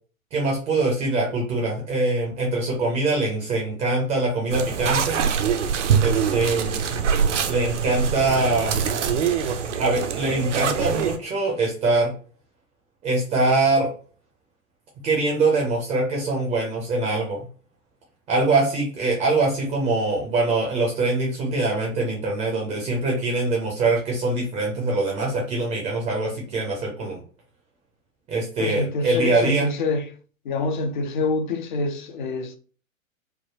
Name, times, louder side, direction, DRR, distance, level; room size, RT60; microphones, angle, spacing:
voice 1, 0.3-5.2 6.0-6.8 7.4-8.8 9.8-12.1 13.0-13.9 15.0-17.4 18.3-27.2 28.3-29.7, right 2 dB, 15° right, 0.5 m, -23 dB
sound 1, 4.5-11.2, right 7 dB, 60° right, 0.6 m, -24 dB
voice 2, 28.6-30.2 30.4-32.6, left 3 dB, 40° left, 0.4 m, -26 dB
3.4 x 2.1 x 2.8 m
figure-of-eight pair, 105°, 42 cm